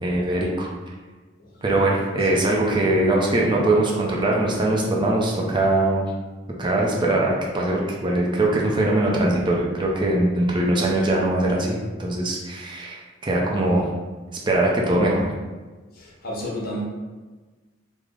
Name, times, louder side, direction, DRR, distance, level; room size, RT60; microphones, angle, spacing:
voice 1, 0.0-0.7 1.6-6.1 6.6-13.8 14.5-15.3, right 1 dB, 25° right, -2 dB, 0.5 m, -21 dB
voice 2, 15.9-16.8, left 1 dB, 50° left, -3 dB, 0.8 m, -32 dB
3.2 x 2.1 x 3.7 m, 1.3 s
head